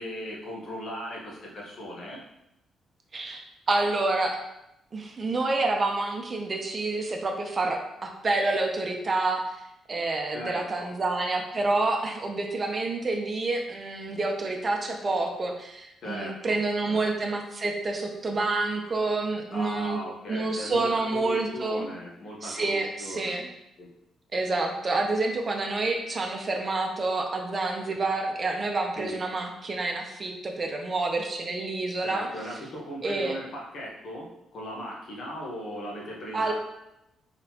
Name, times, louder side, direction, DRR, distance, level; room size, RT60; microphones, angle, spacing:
voice 1, 0.0-2.2 10.3-10.9 16.0-16.6 16.9-17.0 19.5-23.3 23.8-23.9 29.0-29.2 32.0-36.5, equal, 60° left, -2 dB, 1.2 m, -38 dB
voice 2, 3.1-4.4 4.9-9.6 9.9-20.0 20.3-21.9 22.4-23.5 24.3-32.3 33.0-33.4 36.3-36.5, right 2 dB, 35° right, 3 dB, 0.7 m, -28 dB
3.9 x 3.8 x 2.9 m, 0.86 s
cardioid pair, 90°, 0 cm